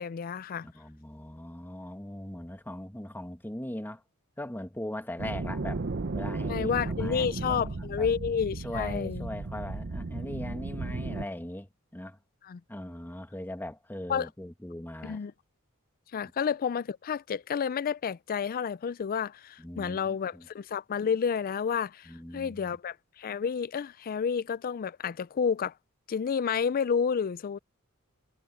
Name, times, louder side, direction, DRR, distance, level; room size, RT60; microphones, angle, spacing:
voice 1, 0.0-0.7 6.5-9.3 12.4-12.6 14.1-14.3 15.0-15.3 16.1-25.7 26.1-27.6, left 6 dB, 40° left, 0.4 m, -30 dB
voice 2, 0.6-4.0 4.4-5.9 6.1-8.1 8.6-12.2 12.7-15.2 19.6-20.5 22.1-22.8, left 1 dB, 10° left, 1.4 m, -40 dB
sound 1, 5.2-11.3, right 3 dB, 50° right, 0.7 m, -34 dB
head